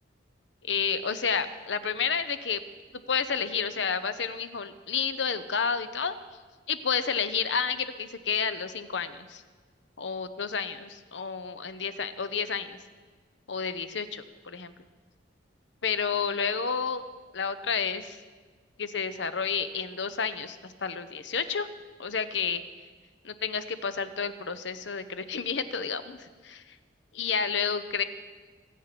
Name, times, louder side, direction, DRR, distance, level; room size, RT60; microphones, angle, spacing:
voice 1, 0.6-2.6 3.1-6.2 6.7-9.3 10.0-12.8 13.5-14.7 15.8-17.0 17.3-18.2 18.8-21.7 22.0-22.6 23.2-26.6 27.1-28.0, left 6 dB, 90° left, 12 dB, 0.9 m, -30 dB
25.0 x 8.4 x 6.0 m, 1.5 s
head